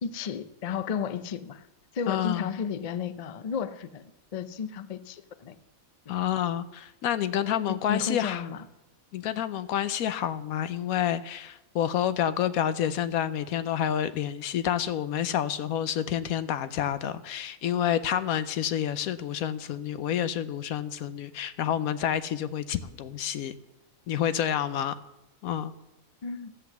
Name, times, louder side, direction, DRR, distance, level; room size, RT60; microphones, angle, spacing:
voice 1, 0.0-1.7 1.9-5.6 7.7-8.6 26.2-26.5, left 7 dB, 65° left, 13 dB, 0.3 m, -33 dB
voice 2, 2.1-2.5 6.1-8.5 9.1-23.6 24.1-25.0 25.4-25.7, left 10 dB, 85° left, 13 dB, 1.1 m, -29 dB
12.5 x 8.0 x 7.0 m, 0.97 s
omnidirectional pair, 1.5 m